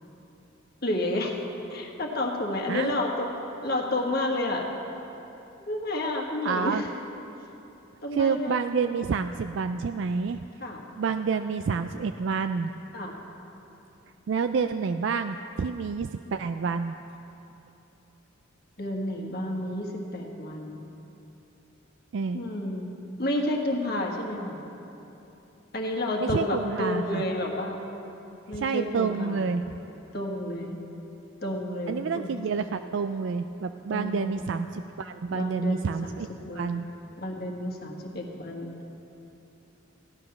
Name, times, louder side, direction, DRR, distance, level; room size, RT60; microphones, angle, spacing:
voice 1, 0.8-1.4 1.7-3.3 3.6-4.7 5.6-6.9 8.0-8.5 10.6-10.8 12.9-13.1 18.8-20.9 22.3-22.9 23.2-24.6 25.7-27.8 28.5-29.5 30.1-30.7 31.4-32.4 33.9-34.5 35.3-36.2 36.5-36.9 37.2-38.7, left 1 dB, 50° left, 1 dB, 1.5 m, -30 dB
voice 2, 6.4-6.8 8.1-10.4 11.0-12.7 14.3-16.9 22.1-22.5 26.2-27.2 28.5-29.6 31.9-36.3 36.5-36.9, right 5 dB, 60° right, 8 dB, 0.3 m, -28 dB
15.5 x 10.5 x 5.9 m, 3.0 s
head